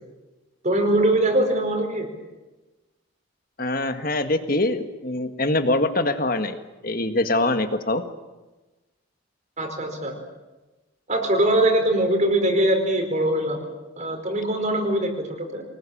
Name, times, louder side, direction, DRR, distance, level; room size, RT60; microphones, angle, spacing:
voice 1, 0.6-2.1 9.6-10.1 11.1-13.6 14.0-15.6, right 1 dB, 35° right, 4 dB, 4.7 m, -22 dB
voice 2, 3.6-8.0, left 2 dB, 45° left, 8 dB, 1.8 m, -24 dB
24.5 x 20.0 x 8.8 m, 1.1 s
head